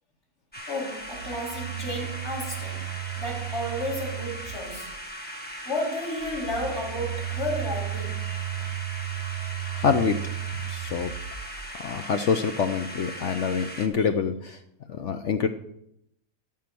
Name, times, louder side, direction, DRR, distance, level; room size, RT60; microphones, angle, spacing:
sound 1, 0.5-13.9, equal, 5° left, 1.0 m, -39 dB
voice 1, 0.7-4.9 5.6-8.3, left 1 dB, 35° left, -5 dB, 3.9 m, -32 dB
Telephone, 1.0-5.0 6.2-11.9, right 15 dB, 75° right, 0.6 m, -35 dB
voice 2, 9.7-10.2 10.7-11.1 11.8-14.6 14.9-15.5, left 6 dB, 70° left, 8 dB, 0.7 m, -26 dB
13.5 x 5.8 x 6.0 m, 0.75 s
omnidirectional pair, 2.0 m